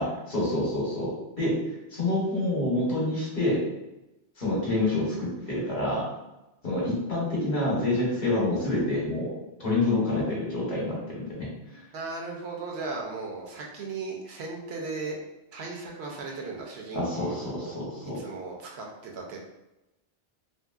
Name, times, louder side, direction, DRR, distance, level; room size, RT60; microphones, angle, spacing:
voice 1, 0.0-1.6 1.9-3.6 4.4-6.0 6.6-9.3 9.6-11.5 16.9-18.2, left 2 dB, 45° left, -5 dB, 0.9 m, -27 dB
voice 2, 11.7-15.2 15.5-17.8 18.1-19.4, right 3 dB, 70° right, 0 dB, 0.8 m, -37 dB
2.8 x 2.6 x 2.3 m, 0.96 s
omnidirectional pair, 1.1 m